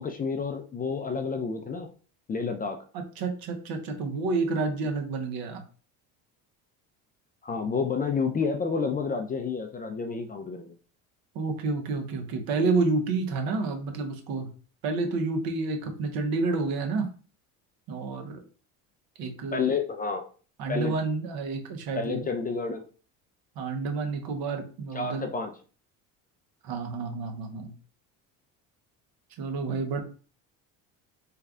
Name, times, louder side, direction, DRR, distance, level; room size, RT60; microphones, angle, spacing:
voice 1, 0.0-1.9 2.3-2.8 7.4-10.7 19.5-20.3 20.7-20.9 22.0-22.9 24.9-25.5, left 5 dB, 25° left, 5 dB, 0.4 m, -30 dB
voice 2, 2.9-5.6 11.3-14.5 14.8-17.1 17.9-18.4 19.2-19.7 20.6-22.3 23.6-25.3 26.6-27.7 29.4-30.0, right 3 dB, 65° right, 4 dB, 1.0 m, -29 dB
3.2 x 2.3 x 3.7 m, 0.38 s
supercardioid pair, 95°, 39 cm